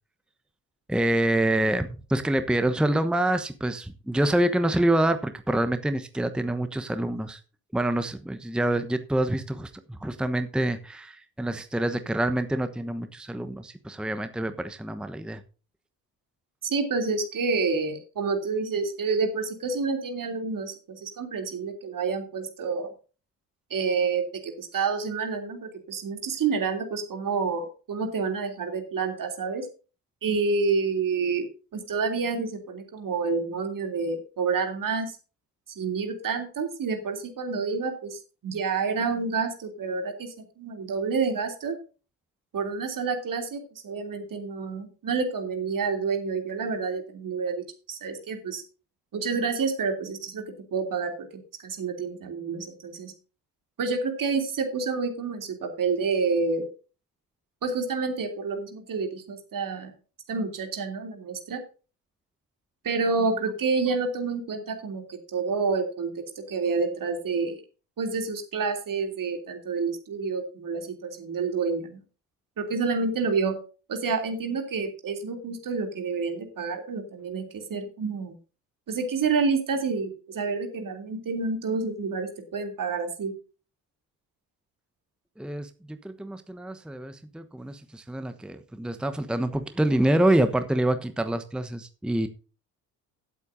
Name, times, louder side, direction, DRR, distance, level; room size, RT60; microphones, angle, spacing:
voice 1, 0.9-7.4 7.7-15.4 85.4-92.3, right 1 dB, ahead, 9 dB, 1.1 m, -26 dB
voice 2, 16.6-22.9 23.7-29.7 30.2-35.2 35.7-41.8 42.5-48.6 49.1-53.1 53.8-56.6 57.6-59.9 60.3-61.6 62.8-67.6 68.0-72.0 72.6-73.6 73.9-78.4 78.9-83.3, right 4 dB, 40° right, 5 dB, 3.2 m, -29 dB
17.0 x 8.3 x 2.7 m, 0.35 s
figure-of-eight pair, 55°, 49 cm